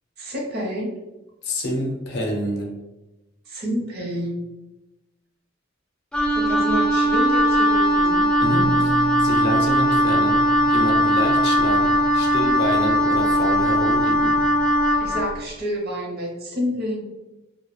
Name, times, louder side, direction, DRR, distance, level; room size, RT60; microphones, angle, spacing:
voice 1, 0.2-0.9 3.5-4.4 6.3-8.3 15.0-17.0, equal, 55° right, -2 dB, 0.7 m, -28 dB
voice 2, 1.4-2.7 8.4-14.4, equal, 60° left, 1 dB, 0.5 m, -28 dB
Wind instrument woodwind instrument, 6.1-15.3, equal, 5° left, 0.3 m, -19 dB
Bass guitar, 8.4-14.7, equal, 80° right, 0.9 m, -34 dB
2.2 x 2.1 x 2.9 m, 1.0 s
head